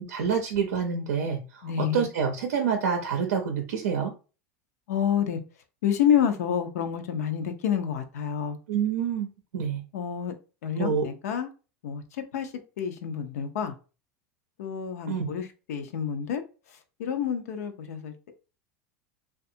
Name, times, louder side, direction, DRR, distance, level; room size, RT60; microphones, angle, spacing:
voice 1, 0.0-4.1 8.7-9.3 9.5-9.8 10.7-11.1 15.1-15.3, right 6 dB, 85° right, 3 dB, 0.5 m, -27 dB
voice 2, 1.6-2.0 4.9-5.4 5.8-8.6 9.9-10.3 10.6-11.5 11.8-12.0 12.3-12.5 12.8-13.7 14.6-16.4 17.0-18.1, left 8 dB, 80° left, 7 dB, 0.5 m, -28 dB
2.7 x 2.3 x 2.6 m, 0.33 s
hypercardioid pair, 105°, 8 cm